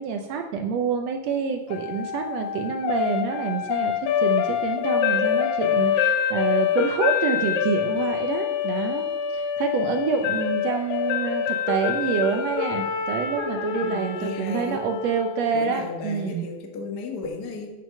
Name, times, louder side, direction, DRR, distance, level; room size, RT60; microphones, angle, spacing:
voice 1, 0.0-16.4, right 6 dB, 80° right, 5 dB, 1.5 m, -27 dB
sound 1, 1.7-15.8, left 8 dB, 75° left, 2.0 m, -26 dB
voice 2, 13.8-14.9 15.5-17.7, left 3 dB, 50° left, 2 dB, 1.2 m, -34 dB
8.9 x 6.2 x 5.4 m, 1.2 s
omnidirectional pair, 3.6 m